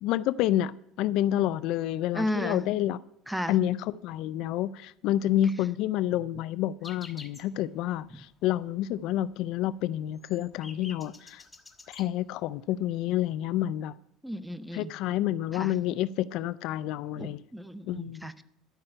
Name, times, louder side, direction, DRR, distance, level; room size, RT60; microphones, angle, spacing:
voice 1, 0.0-0.7 1.0-3.0 3.5-11.4 11.9-13.9 14.7-17.4 17.9-18.3, left 12 dB, 65° left, 0.4 m, -29 dB
voice 2, 2.1-2.6 3.3-3.6 8.1-8.2 14.2-14.9 15.5-15.7 17.2-18.4, equal, 5° right, 0.7 m, -34 dB
sound 1, 6.8-7.6 7.9-8.0 8.3-8.6 8.9-9.0 9.4-12.1 12.8-12.9 13.1-13.3, left 3 dB, 15° left, 1.3 m, -49 dB
12.5 x 5.5 x 8.9 m
supercardioid pair, 100°, 0 cm